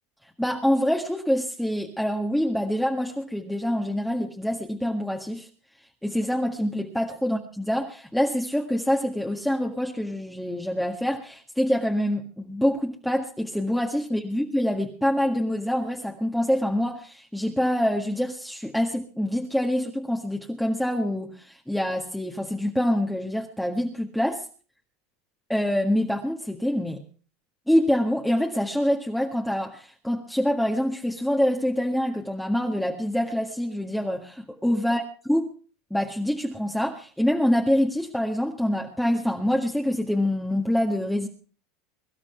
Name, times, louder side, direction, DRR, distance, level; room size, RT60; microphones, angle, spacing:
voice 1, 0.4-5.5 6.0-24.5 25.5-27.0 27.7-35.0 35.3-35.5 35.9-41.3, equal, 5° left, 0 dB, 1.8 m, -25 dB
23.5 x 12.0 x 3.4 m, 0.40 s
supercardioid pair, 105°, 0 cm